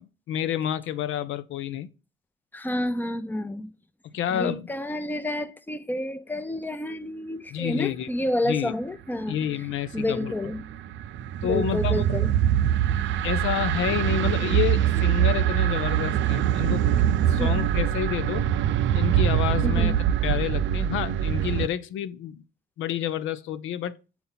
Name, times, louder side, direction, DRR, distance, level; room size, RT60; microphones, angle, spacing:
voice 1, 0.0-1.9 4.1-4.7 7.5-8.1 8.5-8.7 9.3-10.3 11.4-12.0 13.2-16.9 17.3-18.4 18.9-19.9 20.2-22.4 22.8-23.9, left 10 dB, 80° left, 0.5 m, -29 dB
voice 2, 2.5-3.7 4.3-9.4 9.9-10.6 11.4-12.3 17.4-17.6 19.6-19.9, left 1 dB, 10° left, 0.6 m, -29 dB
sound 1, 9.9-21.7, right 10 dB, 75° right, 0.5 m, -23 dB
6.9 x 4.4 x 3.9 m
cardioid pair, 90°, 20 cm